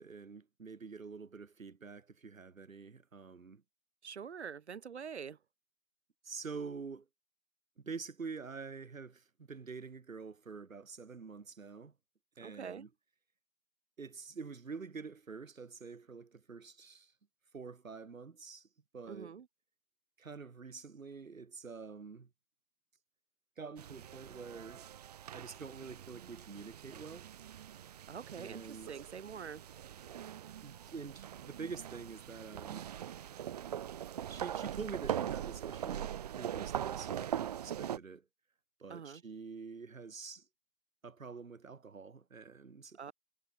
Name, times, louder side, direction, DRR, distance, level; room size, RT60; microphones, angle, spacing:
voice 1, 0.0-3.6 6.2-7.1 7.8-11.9 12.4-12.9 14.0-17.1 17.5-18.7 18.9-19.4 20.2-22.3 23.6-24.9 25.3-27.3 28.4-28.9 30.6-32.9 34.3-38.2 38.8-40.4 41.0-43.1, right 5 dB, 65° right, 2.5 m, -47 dB
voice 2, 4.0-5.4 12.4-12.8 19.1-19.5 28.1-29.6 38.9-39.2 43.0-43.1, right 7 dB, 50° right, 1.6 m, -45 dB
sound 1, 23.8-38.0, right 10 dB, 25° right, 1.2 m, -42 dB
figure-of-eight pair, 140°, 43 cm